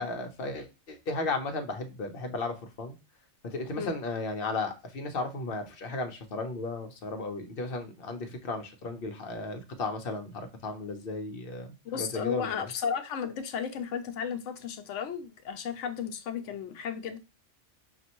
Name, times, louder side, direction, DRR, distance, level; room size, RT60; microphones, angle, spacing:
voice 1, 0.0-3.0 3.4-12.5, left 3 dB, 55° left, 0.9 m, -35 dB
voice 2, 11.8-17.2, left 7 dB, 90° left, 1.0 m, -34 dB
5.2 x 2.5 x 2.9 m
omnidirectional pair, 1.2 m